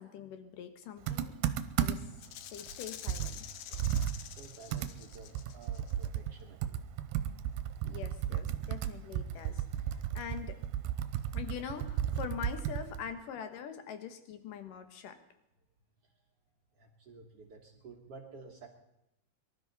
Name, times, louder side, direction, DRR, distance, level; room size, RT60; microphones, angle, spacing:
voice 1, 0.0-1.4 1.8-2.2 2.5-4.0 7.8-9.6 10.1-10.6 11.3-15.2, left 8 dB, 65° left, 8 dB, 2.5 m, -43 dB
Computer keyboard, 1.1-2.2 2.7-2.8 3.1-6.4 6.6-13.1, right 10 dB, 80° right, 2.6 m, -34 dB
Rattle (instrument), 2.2-6.1, left 12 dB, 85° left, 2.9 m, -47 dB
voice 2, 3.7-6.9 16.0-16.1 16.7-18.7, right 4 dB, 60° right, 2 dB, 1.5 m, -53 dB
23.5 x 13.0 x 4.1 m, 0.85 s
omnidirectional pair, 4.7 m